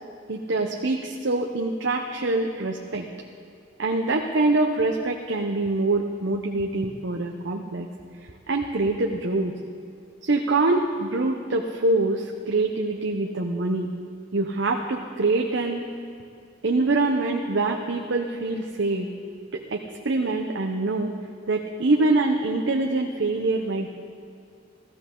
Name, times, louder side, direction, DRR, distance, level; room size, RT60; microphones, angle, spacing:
voice 1, 0.3-3.1 3.8-7.9 8.5-9.5 10.2-13.9 14.3-15.9 16.6-19.1 19.5-21.1 21.5-23.9, right 2 dB, 70° right, 2 dB, 0.8 m, -24 dB
15.5 x 14.5 x 3.8 m, 2.4 s
head